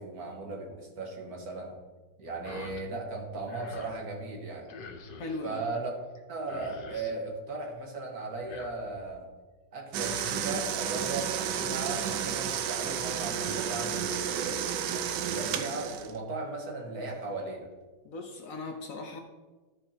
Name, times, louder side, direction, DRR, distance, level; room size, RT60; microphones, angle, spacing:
voice 1, 0.0-1.8 2.2-4.7 5.4-5.9 6.3-9.3 9.7-17.7, right 3 dB, 60° right, 0 dB, 1.8 m, -37 dB
sound 1, 2.4-2.9 3.2-4.0 4.7-5.4 6.2-6.3 6.4-7.2 8.3-9.2 9.9-10.4, left 4 dB, 85° left, 1.5 m, -46 dB
voice 2, 5.2-5.6 18.0-19.2, left 3 dB, 60° left, 3 dB, 1.0 m, -38 dB
sound 2, 9.9-16.2, right 8 dB, 80° right, 1.2 m, -32 dB
13.0 x 5.3 x 2.8 m, 1.3 s
omnidirectional pair, 1.8 m